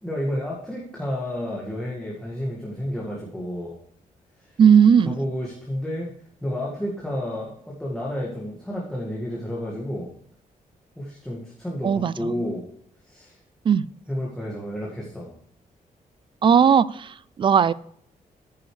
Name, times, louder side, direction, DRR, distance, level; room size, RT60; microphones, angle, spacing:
voice 1, 0.0-3.8 5.0-6.1 6.4-10.1 11.0-12.6 13.0-13.4 14.1-15.3, equal, 5° left, -4 dB, 1.9 m, -31 dB
voice 2, 4.6-5.2 11.8-12.3 13.7-13.9 16.4-17.7, right 7 dB, 35° right, 19 dB, 0.4 m, -17 dB
10.5 x 9.4 x 3.3 m, 0.64 s
wide cardioid pair, 175°, 14 cm